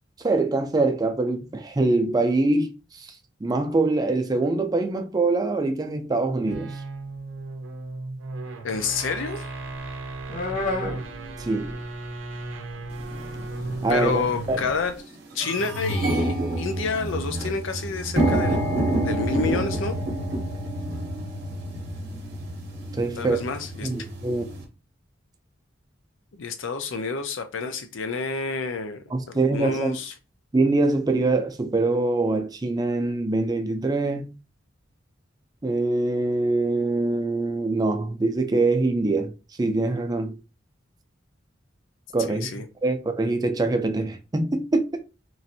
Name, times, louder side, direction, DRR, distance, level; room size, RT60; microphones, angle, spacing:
voice 1, 0.2-3.1 3.4-6.8 11.4-11.8 13.8-14.6 22.9-23.4 23.8-24.5 29.1-30.0 30.5-34.4 35.6-39.3 39.6-40.4 42.1-42.5 42.8-44.8, right 2 dB, 20° right, 0.4 m, -24 dB
sound 1, 6.3-14.8, right 2 dB, 85° right, 0.5 m, -35 dB
voice 2, 8.6-9.5 13.9-14.9 15.3-18.7 19.0-20.0 23.2-23.9 26.3-30.1 42.3-42.7, left 4 dB, 75° left, 0.5 m, -29 dB
sound 2, 9.6-12.2 12.5-14.9, left 2 dB, 45° left, 0.7 m, -34 dB
sound 3, 13.1-13.2 13.9-14.2 14.6-14.7 14.9-24.6, right 1 dB, 55° right, 0.8 m, -28 dB
3.1 x 2.5 x 2.6 m
head